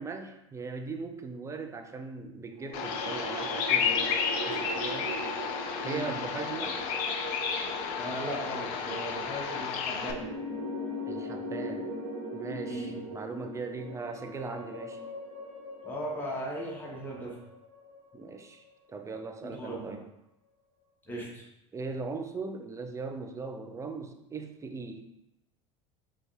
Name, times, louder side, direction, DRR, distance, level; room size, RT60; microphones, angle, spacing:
voice 1, 0.0-4.2 4.4-5.1 5.8-6.8 11.0-12.0 12.3-15.0 18.1-18.6 18.9-20.1 21.7-25.1, right 4 dB, 20° right, 5 dB, 0.5 m, -39 dB
sound 1, 2.5-18.8, equal, 80° right, 1.1 m, -40 dB
Bird vocalization bird call bird song, 2.7-10.1, left 6 dB, 60° left, 0.5 m, -32 dB
voice 2, 8.0-10.3 12.6-12.9 15.8-17.3 19.4-20.0 21.1-21.4, equal, 10° left, -4 dB, 1.3 m, -37 dB
4.9 x 2.4 x 3.2 m, 0.86 s
hypercardioid pair, 80°, 17 cm